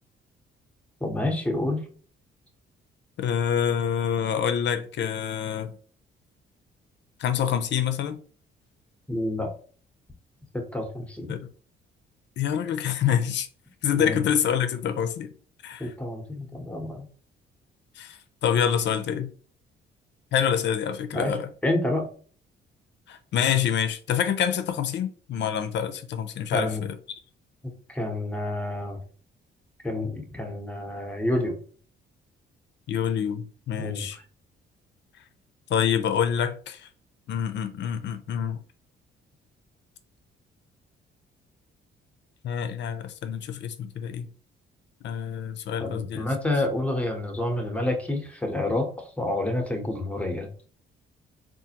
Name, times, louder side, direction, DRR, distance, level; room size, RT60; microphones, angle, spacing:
voice 1, 1.0-1.9 9.1-9.5 10.7-11.3 13.9-14.2 15.8-17.0 21.1-21.3 21.6-22.1 26.5-26.8 27.9-29.0 29.8-31.6 33.8-34.0 45.8-48.9 49.2-50.5, left 1 dB, 5° left, 0.9 m, -28 dB
voice 2, 3.2-5.7 7.2-8.2 11.3-11.4 12.4-13.5 13.8-15.3 15.6-15.9 18.0-19.3 20.3-21.5 23.1-27.2 32.9-34.2 35.7-36.9 37.3-38.6 42.4-44.3 45.0-46.3, left 8 dB, 65° left, 0.5 m, -26 dB
3.8 x 2.5 x 2.8 m
cardioid pair, 90°, 20 cm